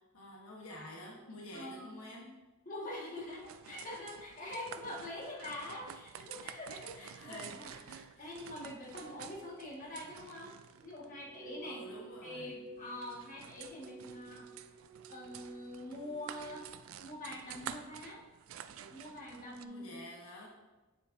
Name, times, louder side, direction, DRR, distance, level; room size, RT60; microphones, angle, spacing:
voice 1, 0.0-2.4 6.9-8.3 11.4-12.5 19.6-20.5, left 1 dB, 80° left, -1 dB, 1.1 m, -49 dB
voice 2, 1.5-1.9 2.6-7.7 8.2-10.5 10.8-11.8 12.2-14.5 15.1-16.6 17.0-18.2 18.7-20.0, left 1 dB, 40° left, -4 dB, 1.6 m, -44 dB
sound 1, 3.2-19.7, right 9 dB, 65° right, 0.3 m, -50 dB
sound 2, 10.9-16.7, right 6 dB, 35° right, 0.8 m, -53 dB
9.1 x 6.8 x 2.6 m, 1.2 s
head